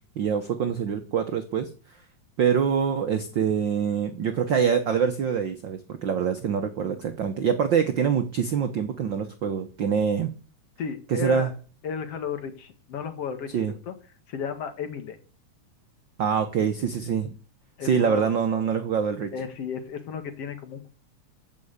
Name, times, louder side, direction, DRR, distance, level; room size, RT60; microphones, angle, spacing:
voice 1, 0.2-1.7 2.4-10.3 11.1-11.5 13.5-13.7 16.2-17.3 17.8-19.3, right 7 dB, 80° right, 8 dB, 1.0 m, -25 dB
voice 2, 10.8-11.5 11.8-13.9 14.3-15.2 17.8-18.4 19.3-20.9, left 6 dB, 55° left, 9 dB, 2.3 m, -34 dB
14.0 x 6.3 x 8.1 m, 0.39 s
omnidirectional pair, 3.6 m